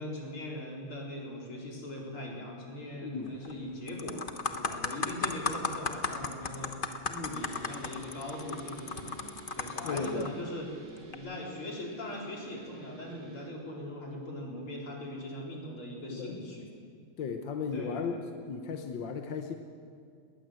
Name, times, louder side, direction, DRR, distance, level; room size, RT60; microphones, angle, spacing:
voice 1, 0.0-6.8 7.1-9.2 9.6-10.7 11.1-16.7 17.7-18.2, left 1 dB, 80° left, -2 dB, 5.1 m, -40 dB
voice 2, 3.0-3.4 9.8-10.3 16.1-16.4 17.2-18.2 18.5-19.6, left 5 dB, 65° left, 5 dB, 1.7 m, -35 dB
sound 1, 3.3-3.5 3.9-10.3 11.0-11.2, left 4 dB, 35° left, 1.0 m, -35 dB
sound 2, 7.4-13.5, right 1 dB, 35° right, 1.9 m, -51 dB
21.0 x 19.5 x 7.7 m, 2.3 s
omnidirectional pair, 2.3 m